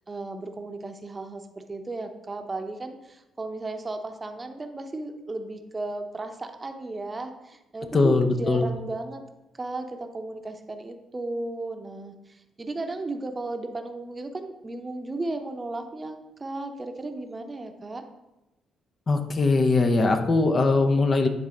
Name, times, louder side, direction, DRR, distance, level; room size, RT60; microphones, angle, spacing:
voice 1, 0.1-9.2 9.6-18.0, right 2 dB, 30° right, 6 dB, 0.8 m, -35 dB
voice 2, 7.9-8.6 19.1-21.3, left 3 dB, 40° left, 6 dB, 0.8 m, -21 dB
10.0 x 4.1 x 3.8 m, 0.98 s
figure-of-eight pair, 40°, 0 cm